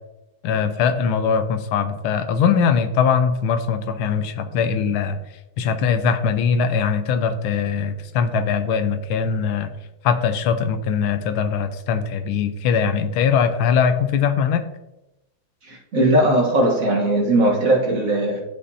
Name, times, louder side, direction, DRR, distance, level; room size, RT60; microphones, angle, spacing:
voice 1, 0.4-5.2 5.6-9.7 10.0-14.7, left 6 dB, 85° left, 9 dB, 1.6 m, -21 dB
voice 2, 15.6-18.4, right 1 dB, 45° right, -1 dB, 1.5 m, -19 dB
12.5 x 5.2 x 2.7 m, 0.92 s
omnidirectional pair, 2.2 m